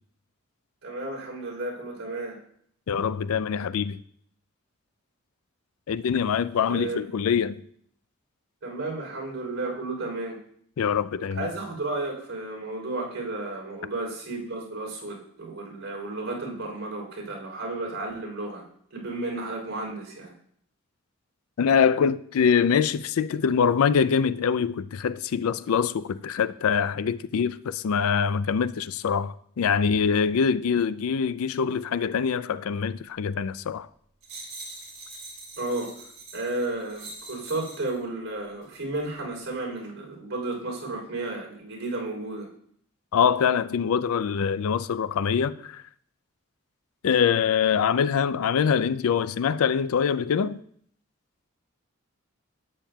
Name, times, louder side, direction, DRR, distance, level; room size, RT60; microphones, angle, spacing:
voice 1, 0.8-2.4 6.7-7.0 8.6-10.4 11.3-18.7 18.9-20.3 35.6-35.9 36.3-42.5, right 2 dB, 65° right, 3.5 m, -33 dB
voice 2, 2.9-4.0 5.9-7.6 10.8-11.5 21.6-33.9 43.1-45.8 47.0-50.6, left 7 dB, 90° left, 0.4 m, -24 dB
sound 1, 34.2-38.0 38.6-38.8, right 2 dB, 30° right, 2.6 m, -43 dB
12.0 x 8.8 x 2.3 m
head